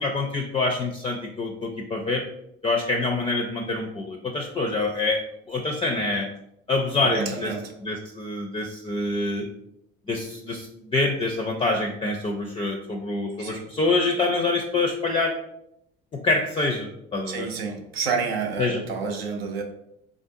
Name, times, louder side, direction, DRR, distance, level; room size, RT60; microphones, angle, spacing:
voice 1, 0.0-2.2 2.6-5.2 5.5-6.3 6.7-7.5 7.8-9.4 10.1-15.3 16.1-17.5 18.6-18.8, left 3 dB, 20° left, 3 dB, 0.4 m, -26 dB
voice 2, 7.0-7.7 13.4-13.6 17.3-19.6, right 5 dB, 85° right, 2 dB, 0.6 m, -29 dB
3.4 x 2.5 x 2.6 m, 0.78 s
hypercardioid pair, 70°, 30 cm